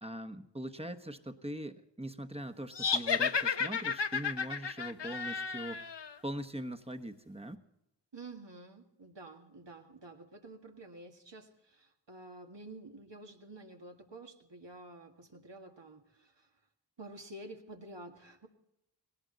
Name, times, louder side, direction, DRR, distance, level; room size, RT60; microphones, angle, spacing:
voice 1, 0.0-5.8 6.2-7.6, right 1 dB, 15° right, 9 dB, 1.1 m, -41 dB
sound 1, 2.7-6.1, left 6 dB, 70° left, 0.8 m, -33 dB
voice 2, 8.1-16.5 17.0-18.5, right 2 dB, 70° right, 3 dB, 2.0 m, -50 dB
18.5 x 18.0 x 4.0 m, 0.86 s
wide cardioid pair, 45°, 44 cm